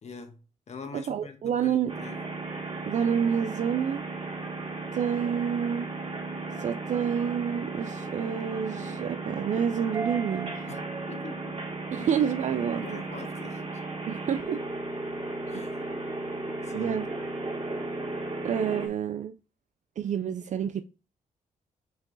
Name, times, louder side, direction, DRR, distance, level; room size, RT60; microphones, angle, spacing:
voice 1, 0.0-2.2 10.7-11.6 12.0-12.3 12.7-13.6 15.5-15.8 16.6-16.9, left 4 dB, 50° left, 1.2 m, -44 dB
voice 2, 0.9-1.9 2.8-4.0 4.9-5.9 6.6-10.6 11.9-13.0 14.1-14.6 15.5-15.7 16.7-17.1 18.4-19.4 20.0-20.8, right 8 dB, 60° right, 0.4 m, -28 dB
sound 1, 1.9-18.9, right 2 dB, 40° right, 2.6 m, -35 dB
5.8 x 4.5 x 3.9 m
cardioid pair, 90°, 14 cm